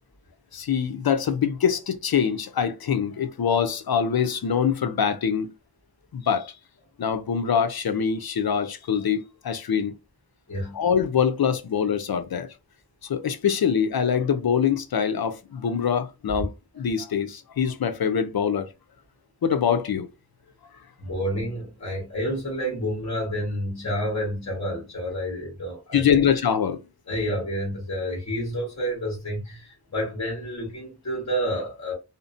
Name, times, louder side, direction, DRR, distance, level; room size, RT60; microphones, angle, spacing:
voice 1, 0.5-5.5 6.1-6.5 7.0-9.9 10.7-12.5 13.0-18.7 19.4-20.1 25.9-26.8, left 7 dB, 70° left, 0.5 m, -24 dB
voice 2, 10.5-10.8 21.0-26.2 27.1-31.9, equal, 45° left, 1.1 m, -29 dB
2.5 x 2.0 x 2.5 m
wide cardioid pair, 60°, 38 cm